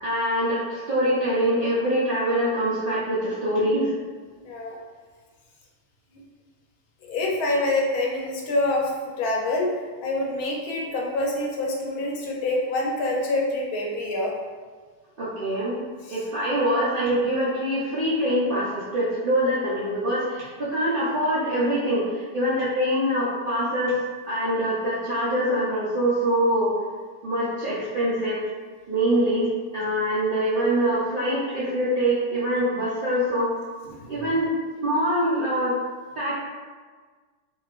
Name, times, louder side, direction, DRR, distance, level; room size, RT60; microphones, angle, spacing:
voice 1, 0.0-3.9 15.2-15.8 16.1-24.0 24.3-26.7 27.2-28.4 28.9-29.5 29.7-33.5 34.1-34.5 34.8-35.8 36.2-36.3, equal, 65° right, -9 dB, 0.5 m, -24 dB
voice 2, 4.4-4.8 7.1-8.9 9.2-9.7 10.0-14.3 16.1-16.2 33.8-34.1, left 2 dB, 75° left, -2 dB, 1.1 m, -26 dB
3.0 x 2.7 x 2.4 m, 1.5 s
omnidirectional pair, 1.6 m